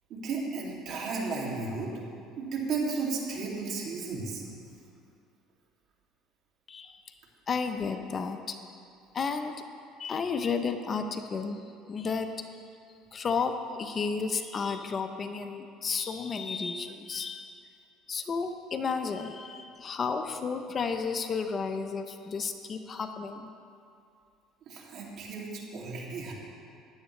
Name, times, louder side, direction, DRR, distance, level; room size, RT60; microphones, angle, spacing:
voice 1, 0.1-1.9 2.4-4.4 24.7-26.3, right 4 dB, 55° right, -2 dB, 2.5 m, -34 dB
voice 2, 7.5-8.6 9.1-9.5 10.0-11.6 11.9-12.5 13.1-17.5 18.1-23.5, left 5 dB, 35° left, 7 dB, 0.7 m, -32 dB
15.5 x 10.5 x 3.3 m, 2.4 s
supercardioid pair, 100°, 0 cm